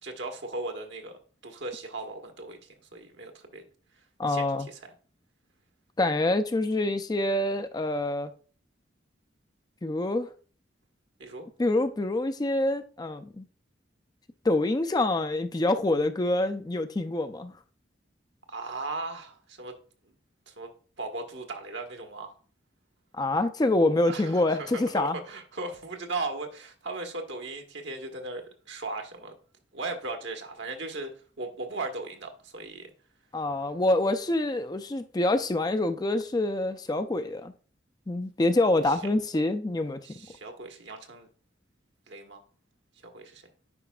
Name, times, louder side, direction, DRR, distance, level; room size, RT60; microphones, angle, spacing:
voice 1, 0.0-1.1 1.4-3.6 4.3-4.8 11.2-11.5 18.5-19.8 20.0-20.1 20.5-20.7 21.0-22.3 24.1-29.4 29.7-31.1 31.4-32.9 38.9-39.0 40.0-41.3 42.1-42.4 43.0-43.4, right 3 dB, 70° right, 1.3 m, -37 dB
voice 2, 4.2-4.7 6.0-8.3 9.8-10.3 11.6-13.5 14.4-17.5 23.1-25.2 33.3-37.5 38.1-40.0, left 2 dB, 20° left, 0.4 m, -26 dB
9.7 x 5.1 x 2.3 m
head